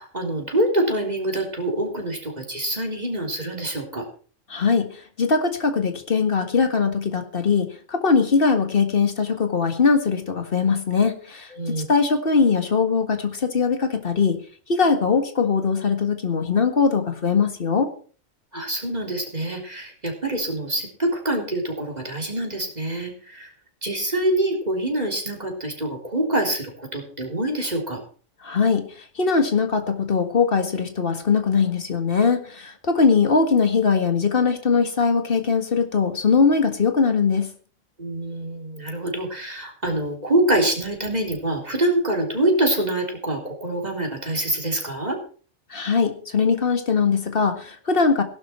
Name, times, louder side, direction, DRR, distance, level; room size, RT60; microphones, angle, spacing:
voice 1, 0.0-4.1 11.5-11.8 18.5-23.5 23.8-28.0 38.0-45.2, right 1 dB, 35° right, 1 dB, 3.8 m, -25 dB
voice 2, 4.5-14.4 14.7-17.9 28.4-28.9 29.2-37.5 45.7-48.2, left 5 dB, 45° left, 7 dB, 1.9 m, -21 dB
17.0 x 11.5 x 4.4 m, 0.42 s
omnidirectional pair, 1.3 m